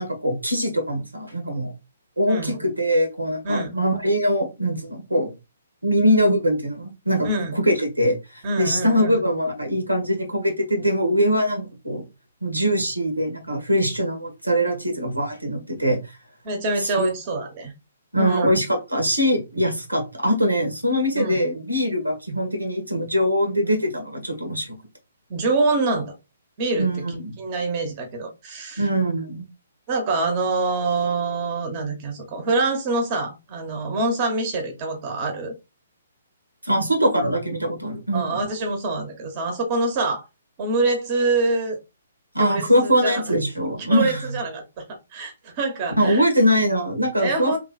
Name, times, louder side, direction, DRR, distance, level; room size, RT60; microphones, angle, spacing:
voice 1, 0.0-1.7 2.2-5.3 5.8-12.0 12.4-16.2 16.8-17.1 18.1-24.8 26.8-27.4 28.8-29.5 36.6-38.4 42.3-44.3 46.0-47.6, equal, 90° right, 1.7 m, -22 dB
voice 2, 2.3-2.6 3.4-3.8 7.2-7.6 8.4-9.2 16.4-17.7 18.2-18.6 21.1-21.4 25.3-26.1 26.6-26.9 27.4-28.9 29.9-35.5 37.1-37.3 38.1-40.2 40.6-41.8 42.4-43.3 43.9-44.8 45.1-46.2 47.2-47.6, right 3 dB, 35° right, 1.3 m, -25 dB
3.3 x 3.2 x 4.1 m
figure-of-eight pair, 130°, 0 cm